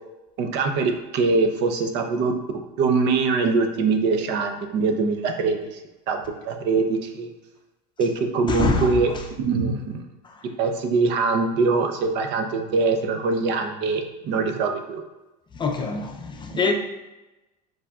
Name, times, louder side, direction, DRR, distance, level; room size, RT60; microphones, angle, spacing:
voice 1, 0.4-2.3 2.8-5.8 6.1-7.3 8.0-9.1 9.4-10.0 10.6-15.0 16.5-16.6, right 4 dB, 55° right, 5 dB, 0.7 m, -23 dB
voice 2, 8.5-9.2 10.2-10.3 15.5-16.7, left 4 dB, 20° left, 2 dB, 0.5 m, -25 dB
4.7 x 4.4 x 2.4 m, 1.0 s
supercardioid pair, 115°, 21 cm